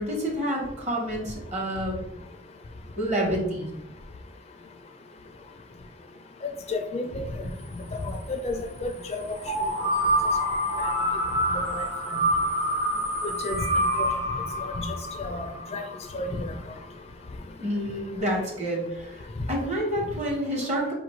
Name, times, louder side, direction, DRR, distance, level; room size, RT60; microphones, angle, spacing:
voice 1, 0.0-2.0 3.0-3.7 17.6-20.9, equal, 40° right, -1 dB, 1.0 m, -28 dB
voice 2, 6.7-7.2 8.0-9.2 11.7-11.8 12.1-12.2 13.4-13.7 14.6-14.9 15.2-15.4 15.7-15.8 16.1-16.5, left 2 dB, 35° left, 6 dB, 0.4 m, -31 dB
sound 1, 9.4-16.2, equal, 90° right, 1.3 m, -27 dB
5.0 x 2.5 x 3.0 m, 0.86 s
head